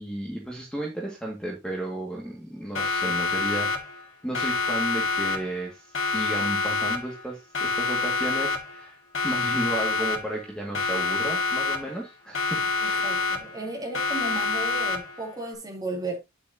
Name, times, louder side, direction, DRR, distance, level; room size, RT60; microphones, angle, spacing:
voice 1, 0.0-3.7 4.2-13.0, right 1 dB, 5° left, 2.1 m, -33 dB
Siren, 2.7-4.1 4.3-5.7 5.9-7.3 7.5-8.9 9.1-10.5 10.7-12.1 12.3-13.7 13.9-15.3, left 4 dB, 75° left, 2.4 m, -27 dB
voice 2, 12.8-16.2, right 2 dB, 20° right, 3.4 m, -34 dB
9.6 x 7.3 x 2.9 m
head